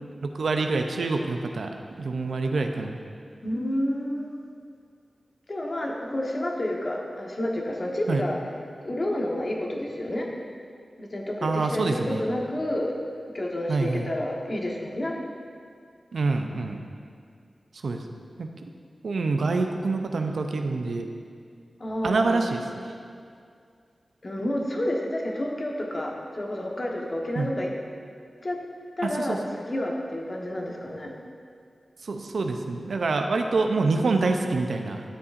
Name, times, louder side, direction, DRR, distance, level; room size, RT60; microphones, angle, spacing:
voice 1, 0.2-3.0 8.1-8.2 11.4-12.2 13.7-14.1 16.1-16.8 17.8-18.0 18.4-18.5 19.0-21.1 22.0-22.9 27.4-27.5 29.2-29.4 32.0-35.0, right 3 dB, 85° right, 5 dB, 0.5 m, -26 dB
voice 2, 3.4-4.4 5.5-8.4 8.8-10.3 11.0-15.1 21.8-22.5 24.2-27.7 28.4-28.6 29.0-31.1, left 1 dB, 45° left, -1 dB, 1.2 m, -30 dB
11.0 x 6.8 x 2.5 m, 2.2 s
cardioid pair, 55°, 0 cm